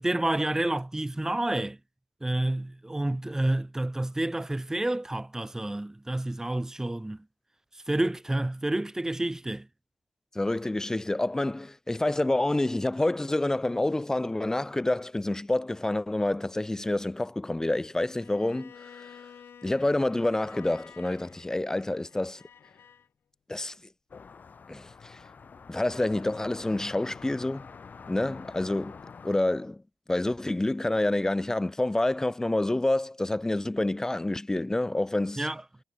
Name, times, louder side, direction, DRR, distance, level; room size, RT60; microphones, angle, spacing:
voice 1, 0.0-1.8 2.2-7.2 7.9-9.7 35.4-35.6, right 1 dB, 10° right, 0.7 m, -29 dB
voice 2, 10.3-19.2 19.6-22.4 23.5-23.7 24.7-25.2 25.7-27.7 28.1-29.0 29.2-29.8 30.1-35.5, left 2 dB, 15° left, 0.4 m, -28 dB
Bowed string instrument, 18.2-23.1, left 8 dB, 65° left, 6.0 m, -52 dB
sound 1, 24.1-29.4, left 5 dB, 45° left, 0.7 m, -46 dB
cardioid pair, 65°, 4 cm